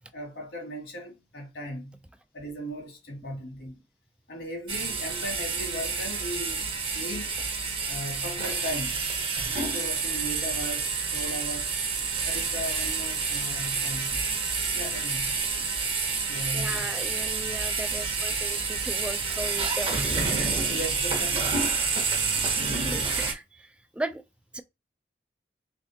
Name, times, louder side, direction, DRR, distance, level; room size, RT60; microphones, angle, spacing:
voice 1, 0.1-2.0 2.3-3.8 4.3-6.6 6.9-7.3 7.9-9.1 9.5-11.8 12.2-14.3 14.7-15.4 16.3-16.9 20.7-21.5, equal, 70° left, 1.7 m, -37 dB
sound 1, 4.7-23.3, right 4 dB, 30° right, 0.9 m, -28 dB
voice 2, 16.5-20.6 22.8-24.2 24.5-24.6, right 1 dB, 5° right, 0.3 m, -37 dB
3.6 x 3.5 x 2.7 m
head